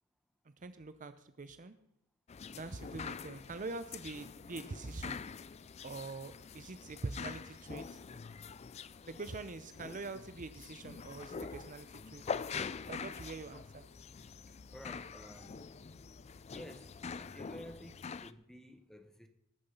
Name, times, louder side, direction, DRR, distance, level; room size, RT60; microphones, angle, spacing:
voice 1, 0.4-1.7 2.5-5.2 5.8-8.0 9.0-12.2 12.9-13.9, right 3 dB, 35° right, 11 dB, 0.6 m, -44 dB
sound 1, 2.3-18.3, left 5 dB, 30° left, 0.3 m, -45 dB
voice 2, 14.7-15.6 16.5-19.3, equal, ahead, 7 dB, 1.0 m, -52 dB
19.5 x 6.8 x 5.5 m, 0.77 s
head